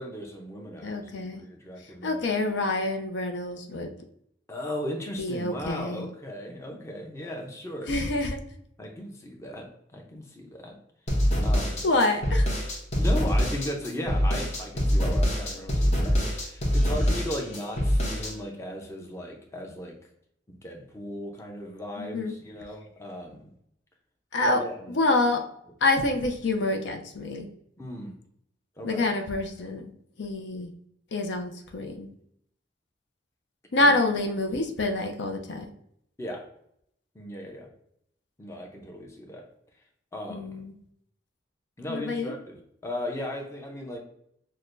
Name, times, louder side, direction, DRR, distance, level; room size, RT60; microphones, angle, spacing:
voice 1, 0.0-2.2 4.5-7.9 8.8-10.8 11.4-11.9 12.9-19.9 20.5-23.5 24.4-25.0 27.8-28.1 28.8-29.1 33.8-33.9 36.2-36.4 37.1-37.7 38.4-39.5 40.1-40.6 41.8-42.6 42.8-44.0, left 1 dB, 15° left, 1 dB, 0.6 m, -37 dB
voice 2, 0.8-1.4 2.0-3.9 5.2-6.1 7.9-8.4 11.8-12.5 22.0-22.3 24.3-24.6 24.9-25.4 25.8-27.5 28.8-29.9 30.2-30.7 31.1-32.1 33.7-35.7 40.3-40.7 41.9-42.3, left 2 dB, 65° left, 4 dB, 0.5 m, -27 dB
sound 1, 11.1-18.3, equal, 40° left, 1.1 m, -25 dB
6.3 x 2.2 x 2.5 m, 0.71 s
head